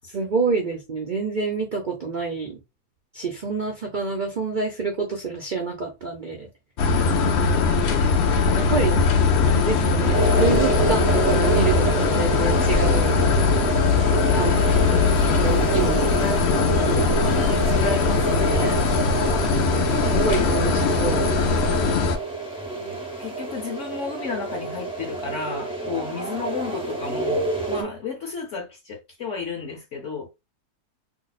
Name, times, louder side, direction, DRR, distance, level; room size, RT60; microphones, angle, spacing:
voice 1, 0.0-2.6 3.1-6.5 7.4-7.5 8.5-9.0 9.4-13.2 14.3-14.5 14.9-15.0 15.4-16.1 16.9-17.4 20.0-21.3 27.8-27.9, right 4 dB, 85° right, 0.4 m, -27 dB
sound 1, 6.8-22.2, left 4 dB, 85° left, 0.5 m, -20 dB
sound 2, 10.1-27.8, right 3 dB, 10° right, 0.3 m, -28 dB
sound 3, 12.3-23.7, right 8 dB, 65° right, 0.7 m, -39 dB
voice 2, 14.3-15.2 16.1-16.7 17.3-18.8 22.7-30.3, left 4 dB, 60° left, 0.8 m, -33 dB
2.8 x 2.1 x 4.0 m
omnidirectional pair, 1.8 m